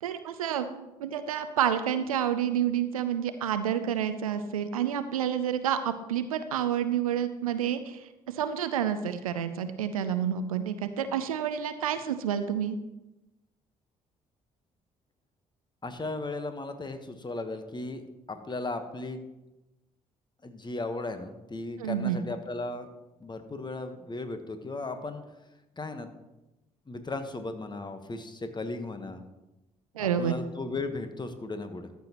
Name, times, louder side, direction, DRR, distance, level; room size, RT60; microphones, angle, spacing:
voice 1, 0.0-8.1 8.3-12.8 21.8-22.2 29.9-30.3, right 9 dB, 90° right, 11 dB, 0.5 m, -29 dB
voice 2, 15.8-19.2 20.4-22.9 23.2-25.2 25.8-26.1 26.9-29.2 30.0-31.9, left 2 dB, 25° left, 8 dB, 1.2 m, -36 dB
13.0 x 7.0 x 3.0 m, 0.99 s
hypercardioid pair, 45°, 18 cm